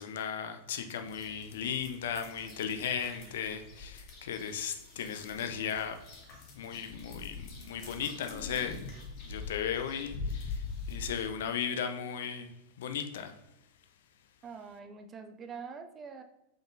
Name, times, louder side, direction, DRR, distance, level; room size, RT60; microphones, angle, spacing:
voice 1, 0.0-6.0 6.5-8.8 9.2-12.5 12.8-13.4, left 7 dB, 60° left, 0.4 m, -36 dB
sound 1, 1.1-11.3, left 4 dB, 40° left, 1.0 m, -44 dB
voice 2, 14.4-16.2, right 5 dB, 25° right, 0.4 m, -45 dB
4.9 x 3.8 x 2.5 m
figure-of-eight pair, 90°, 0 cm